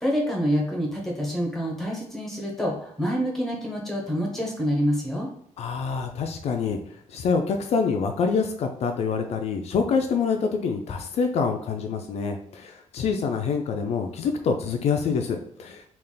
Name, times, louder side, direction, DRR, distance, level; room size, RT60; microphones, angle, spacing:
voice 1, 0.0-5.3, equal, 5° left, -1 dB, 1.0 m, -27 dB
voice 2, 5.6-6.8 7.1-15.8, left 5 dB, 60° left, 5 dB, 0.4 m, -26 dB
3.3 x 2.4 x 3.8 m, 0.68 s
cardioid pair, 150°, 12 cm